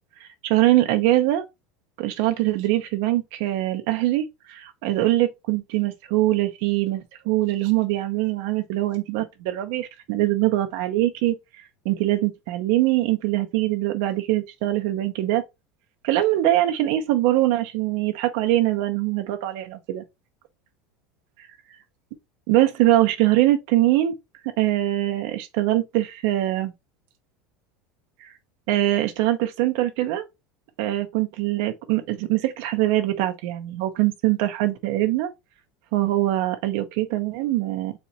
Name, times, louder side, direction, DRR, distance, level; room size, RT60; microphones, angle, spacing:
voice 1, 0.4-1.4 2.0-11.4 11.8-15.4 16.0-20.0 22.5-24.2 24.4-26.7 28.2-28.3 28.7-30.2 30.8-35.3 35.9-37.9, right 15 dB, 70° right, 0.7 m, -23 dB
4.3 x 2.5 x 4.2 m
supercardioid pair, 120°, 0 cm